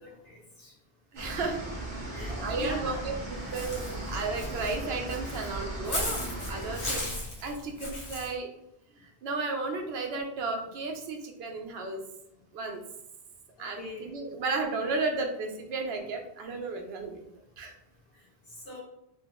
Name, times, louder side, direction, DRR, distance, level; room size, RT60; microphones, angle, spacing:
voice 1, 0.0-0.7 2.1-3.0 3.4-3.6 13.8-14.1 18.6-18.8, left 2 dB, 65° left, -8 dB, 1.4 m, -42 dB
voice 2, 1.1-1.9 2.4-3.2 3.5-7.1 7.4-8.5 9.0-12.0 12.5-12.8 13.6-17.2 17.6-17.7, right 3 dB, 75° right, 4 dB, 0.8 m, -33 dB
sound 1, 1.2-7.0, right 1 dB, 30° right, 0.7 m, -37 dB
Walk footsteps / Bird, 3.5-8.3, left 1 dB, 85° left, 1.2 m, -36 dB
2.9 x 2.7 x 2.9 m, 0.84 s
omnidirectional pair, 1.1 m